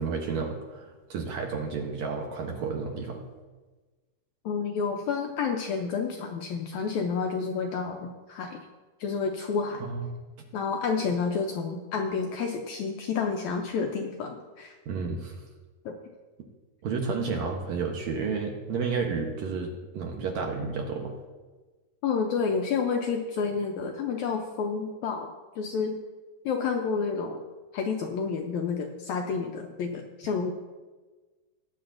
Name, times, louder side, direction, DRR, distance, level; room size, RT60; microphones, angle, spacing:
voice 1, 0.0-3.2 9.8-10.1 14.9-15.4 16.8-21.1, right 5 dB, 65° right, 2 dB, 1.9 m, -31 dB
voice 2, 4.5-8.7 9.0-9.8 10.5-14.8 15.9-16.0 22.0-25.3 25.6-26.0 26.5-27.4 27.7-30.5, left 5 dB, 75° left, 3 dB, 1.7 m, -29 dB
19.0 x 9.6 x 2.6 m, 1.3 s
omnidirectional pair, 4.0 m